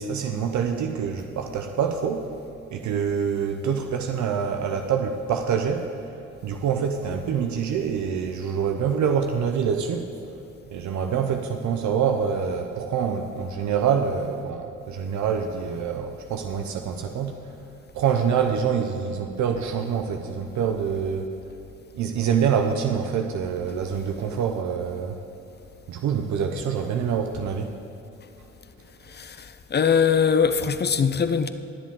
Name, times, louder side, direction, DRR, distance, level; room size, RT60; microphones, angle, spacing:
voice 1, 0.0-2.3 2.7-5.9 6.4-10.1 10.7-17.6 17.9-21.3 21.9-25.2 25.9-27.7, right 7 dB, 70° right, 4 dB, 0.8 m, -26 dB
voice 2, 29.1-31.5, left 6 dB, 35° left, 11 dB, 0.6 m, -22 dB
21.5 x 7.5 x 3.8 m, 2.7 s
cardioid pair, 90°, 30 cm